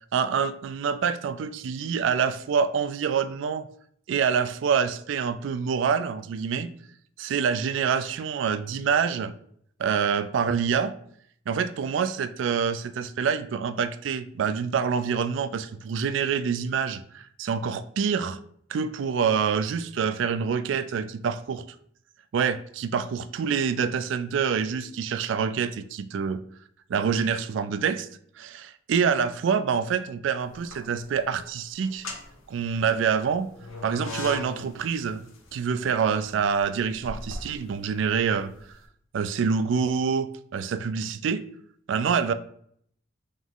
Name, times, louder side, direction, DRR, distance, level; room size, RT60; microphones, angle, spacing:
voice 1, 0.1-3.7 4.1-6.7 7.2-9.3 9.8-10.9 11.5-18.4 18.7-21.6 22.3-26.4 26.9-28.1 28.4-32.1 32.5-33.5 33.8-35.2 35.5-38.5 39.1-41.4 41.9-42.3, right 6 dB, 65° right, 12 dB, 0.3 m, -26 dB
sound 1, 30.4-31.1 31.8-38.7, left 2 dB, 90° left, 0.9 m, -40 dB
3.9 x 3.0 x 3.7 m, 0.64 s
head